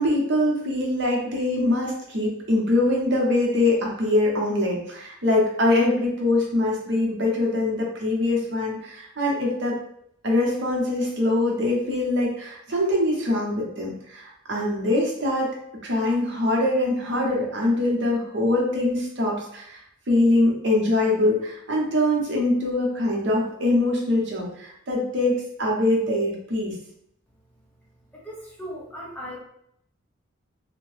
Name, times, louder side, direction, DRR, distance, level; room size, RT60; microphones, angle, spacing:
voice 1, 0.0-9.8 10.2-15.5 15.8-26.7, left 1 dB, 55° right, -2 dB, 0.7 m, -23 dB
voice 2, 28.1-29.4, equal, 5° left, -5 dB, 0.5 m, -37 dB
2.6 x 2.1 x 3.2 m, 0.73 s
head